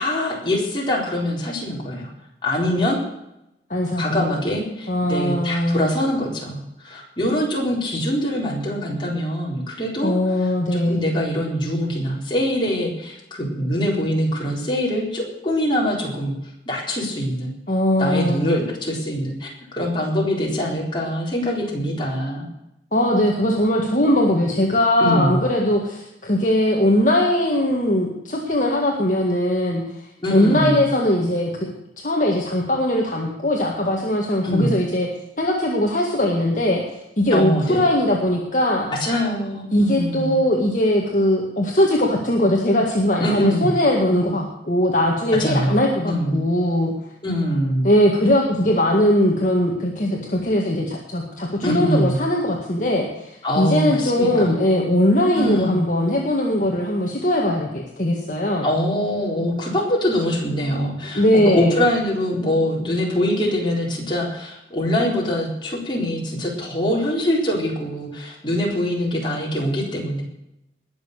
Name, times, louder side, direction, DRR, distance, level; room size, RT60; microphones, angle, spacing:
voice 1, 0.0-2.1 2.4-3.0 4.0-10.2 10.7-16.3 16.7-17.5 18.0-22.5 25.0-25.4 30.2-30.9 34.4-34.7 37.3-37.8 39.0-40.4 43.2-43.7 45.4-45.8 46.1-46.4 47.2-47.9 51.6-52.2 53.4-54.6 55.3-55.8 58.6-70.2, equal, 25° left, -3 dB, 4.1 m, -23 dB
voice 2, 3.7-4.3 4.9-5.9 10.0-11.0 17.7-18.5 22.9-29.8 30.3-31.5 32.0-35.1 35.4-36.8 37.2-38.9 39.7-46.9 47.8-58.7 61.1-61.9, left 1 dB, 45° left, -1 dB, 1.9 m, -20 dB
20.0 x 6.9 x 6.7 m, 0.85 s
head